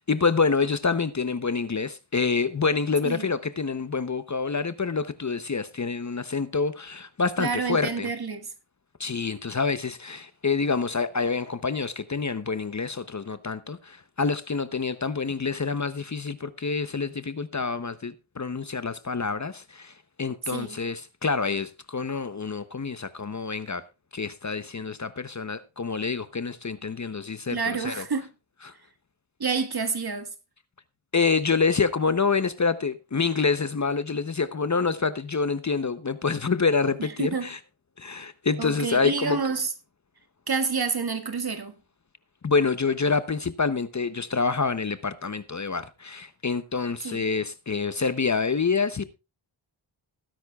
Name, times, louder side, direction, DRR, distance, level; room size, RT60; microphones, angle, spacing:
voice 1, 0.1-8.1 9.0-23.8 24.1-28.0 28.6-28.7 31.1-37.6 38.0-39.4 42.4-49.0, left 4 dB, 35° left, 0.8 m, -27 dB
voice 2, 7.4-8.5 20.5-20.8 27.5-28.3 29.4-30.3 37.2-37.5 38.6-39.7 40.5-41.7 47.0-47.2, right 5 dB, 50° right, 1.8 m, -28 dB
19.5 x 10.0 x 2.3 m
wide cardioid pair, 70°, 49 cm